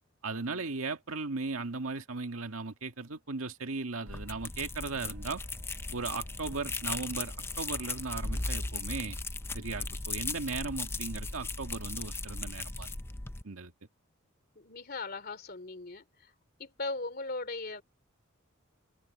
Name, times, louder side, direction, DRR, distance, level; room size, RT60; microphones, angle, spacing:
voice 1, 0.2-5.4 5.9-9.2 9.5-12.9 13.4-13.7, right 3 dB, 85° right, 1.8 m, -37 dB
sound 1, 4.1-13.4, left 3 dB, 10° left, 0.5 m, -37 dB
sound 2, 4.8-8.7, right 2 dB, 35° right, 7.2 m, -64 dB
voice 2, 14.5-16.3 16.6-17.8, left 3 dB, 45° left, 2.9 m, -38 dB
open air
head